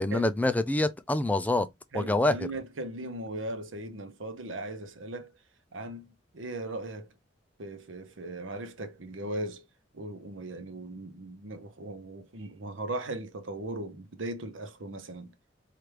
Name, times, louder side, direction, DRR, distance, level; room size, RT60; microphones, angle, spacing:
voice 1, 0.0-1.7 1.9-2.3, left 2 dB, 10° left, 0.3 m, -26 dB
voice 2, 1.9-5.3 5.7-7.1 7.6-9.7 9.9-15.3, right 1 dB, 85° right, 0.8 m, -38 dB
4.5 x 2.5 x 3.2 m
head